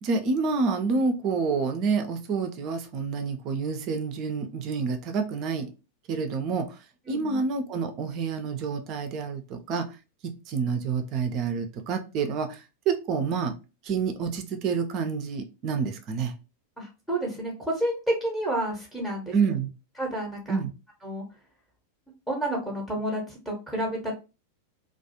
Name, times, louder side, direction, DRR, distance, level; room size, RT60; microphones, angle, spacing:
voice 1, 0.0-5.7 6.1-10.0 10.2-13.6 13.8-16.3 19.3-19.7 20.5-20.7, right 5 dB, 40° right, 0.4 m, -28 dB
voice 2, 7.1-7.4 16.8-19.3 20.0-20.6 21.0-21.2 22.3-24.1, right 1 dB, 5° left, 0.7 m, -30 dB
2.3 x 2.0 x 2.8 m
figure-of-eight pair, 90°, 0 cm